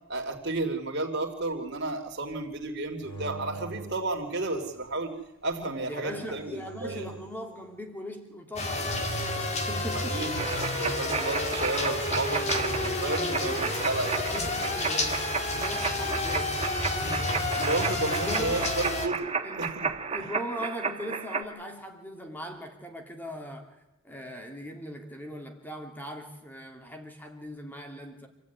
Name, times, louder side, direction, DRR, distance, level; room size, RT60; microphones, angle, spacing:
voice 1, 0.1-5.1 5.4-7.1 9.9-14.3 16.9-19.3 19.6-19.9, right 2 dB, 50° right, 3.3 m, -32 dB
sound 1, 3.0-5.0 6.0-7.5, right 2 dB, 80° left, 7.1 m, -44 dB
voice 2, 5.9-10.2 13.3-13.7 14.0-16.7 18.1-18.7 19.4-19.8 20.1-23.8 24.0-28.3, equal, 10° left, 2.8 m, -40 dB
sound 2, 8.6-19.1, left 2 dB, 30° left, 2.1 m, -30 dB
sound 3, 10.4-21.4, right 5 dB, 25° right, 1.4 m, -33 dB
27.5 x 15.5 x 9.6 m
head